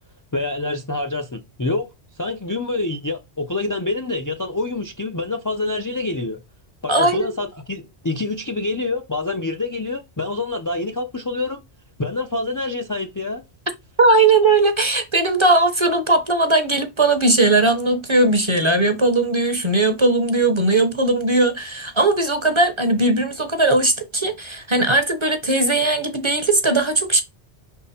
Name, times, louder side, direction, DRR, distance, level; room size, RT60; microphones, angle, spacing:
voice 1, 0.3-1.9 2.2-6.4 6.8-11.6 12.0-13.4, left 2 dB, 25° left, 0.4 m, -26 dB
voice 2, 6.9-7.4 14.0-27.2, right 2 dB, 30° right, 0.9 m, -18 dB
5.8 x 3.8 x 4.2 m
omnidirectional pair, 1.1 m